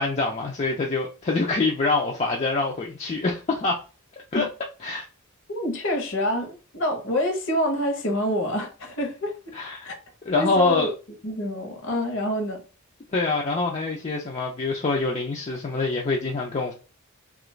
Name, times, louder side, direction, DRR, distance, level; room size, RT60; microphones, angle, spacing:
voice 1, 0.0-3.8 4.3-4.5 4.8-5.1 9.5-9.9 10.3-10.9 13.1-16.7, left 3 dB, 30° left, 0.4 m, -25 dB
voice 2, 5.5-9.3 9.8-9.9 10.3-10.9 11.2-12.6, left 1 dB, 60° left, 0.9 m, -26 dB
2.9 x 2.4 x 3.1 m
head